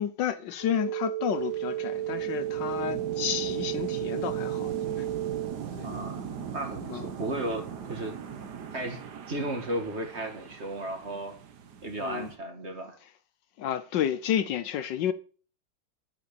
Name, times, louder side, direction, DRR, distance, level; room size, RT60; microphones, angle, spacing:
voice 1, 0.0-5.1 5.8-5.9 6.9-7.1 12.0-12.3 13.6-15.1, left 10 dB, 70° left, 1.3 m, -31 dB
sound 1, 0.6-5.6, right 13 dB, 30° left, 2.0 m, -32 dB
sound 2, 1.3-12.4, right 7 dB, 60° right, 1.7 m, -40 dB
voice 2, 5.8-6.2 6.5-8.2 8.7-9.0 9.3-11.4 11.8-13.0, right 1 dB, 35° right, 2.1 m, -34 dB
9.6 x 8.4 x 6.8 m
omnidirectional pair, 2.1 m